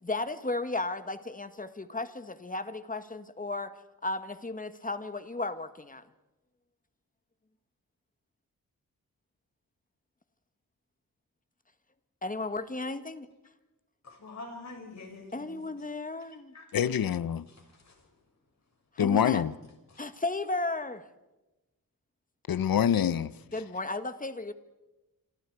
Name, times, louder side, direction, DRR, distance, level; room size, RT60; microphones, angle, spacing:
voice 1, 0.0-3.7 4.0-6.1 12.2-13.3 15.3-16.5 19.0-19.4 20.0-21.1 23.5-24.5, left 2 dB, 25° left, 1.6 m, -34 dB
voice 2, 14.0-15.9 16.5-16.9 17.5-18.1 19.9-20.1, left 2 dB, 50° left, 6.3 m, -47 dB
voice 3, 16.7-17.5 19.0-19.5 22.5-23.3, left 9 dB, 75° left, 0.9 m, -25 dB
27.5 x 26.5 x 4.8 m
wide cardioid pair, 95°, 35 cm